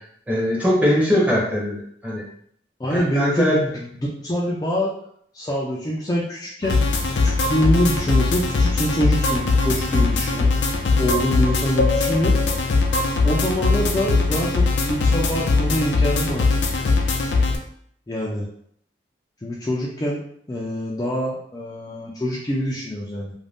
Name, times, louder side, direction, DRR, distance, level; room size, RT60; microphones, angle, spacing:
voice 1, 0.3-2.2 2.9-3.6, equal, 10° right, -5 dB, 0.7 m, -21 dB
voice 2, 2.8-4.9 5.3-6.8 7.2-10.6 11.0-12.4 13.2-16.8 18.1-18.5 19.4-20.2 20.5-23.3, equal, 20° left, -5 dB, 0.3 m, -25 dB
sound 1, 6.6-17.6, left 3 dB, 80° left, 0.5 m, -20 dB
2.5 x 2.1 x 3.4 m, 0.66 s
head